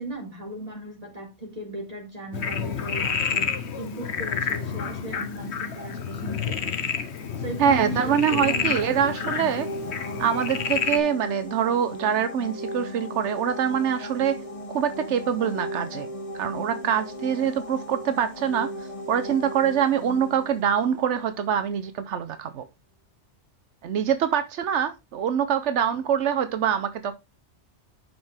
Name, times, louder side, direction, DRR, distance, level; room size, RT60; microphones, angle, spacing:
voice 1, 0.0-6.9 7.4-9.5 9.8-10.2, right 2 dB, 35° right, 3.6 m, -37 dB
Frog, 2.3-11.0, left 7 dB, 75° left, 1.3 m, -29 dB
sound 1, 7.1-21.8, equal, 30° left, 1.2 m, -37 dB
voice 2, 7.6-9.7 10.2-14.4 14.7-16.1 16.3-22.7 23.8-27.1, right 8 dB, 90° right, 1.0 m, -24 dB
11.0 x 5.3 x 3.5 m
omnidirectional pair, 1.2 m